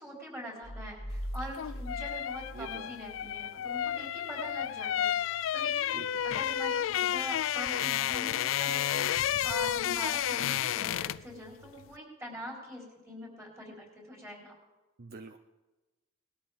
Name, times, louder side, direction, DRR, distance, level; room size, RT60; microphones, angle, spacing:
voice 1, 0.0-14.5, equal, 15° right, -2 dB, 4.0 m, -43 dB
sound 1, 0.6-3.4, equal, 35° left, 1.4 m, -41 dB
sound 2, 1.3-11.3 11.6-11.8, left 10 dB, 80° left, 0.3 m, -31 dB
voice 2, 2.5-2.9 5.9-6.1 15.0-15.4, right 4 dB, 50° right, 8 dB, 0.5 m, -45 dB
19.5 x 13.0 x 3.6 m, 1.1 s
head